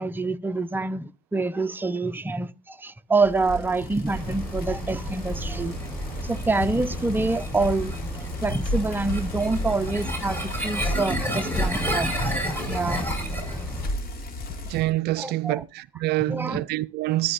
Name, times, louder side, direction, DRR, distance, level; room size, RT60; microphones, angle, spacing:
voice 1, 0.0-5.8 6.1-7.9 8.4-12.2 12.7-13.1 15.2-15.6 16.3-16.6, right 3 dB, 10° right, 0.7 m, -26 dB
Bicycle, 3.2-14.9, left 1 dB, 50° left, 2.3 m, -34 dB
sound 1, 4.1-13.9, right 1 dB, 10° left, 6.2 m, -31 dB
voice 2, 14.7-17.3, right 17 dB, 55° right, 0.5 m, -26 dB
13.5 x 11.0 x 2.6 m
hypercardioid pair, 85°, 20 cm